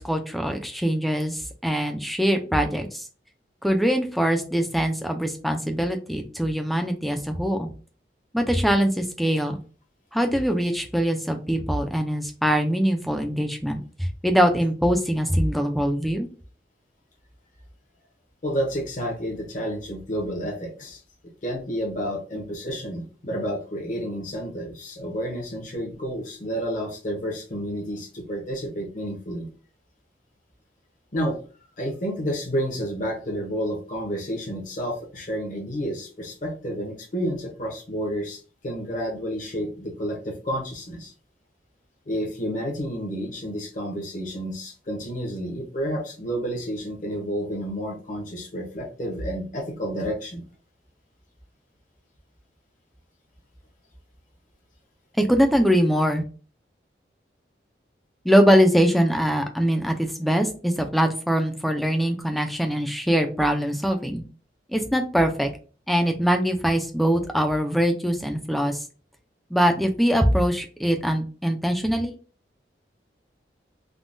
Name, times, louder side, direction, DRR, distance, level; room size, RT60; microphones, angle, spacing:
voice 1, 0.0-3.1 3.6-7.7 8.3-9.6 10.1-16.3 55.2-56.2 58.2-64.2 64.7-65.5 65.9-68.8 69.5-72.1, equal, ahead, 4 dB, 0.3 m, -22 dB
voice 2, 18.4-21.0 21.4-29.5 31.1-31.4 31.8-41.1 42.1-50.4, equal, 45° left, 0 dB, 0.7 m, -30 dB
3.6 x 2.2 x 2.5 m, 0.38 s
head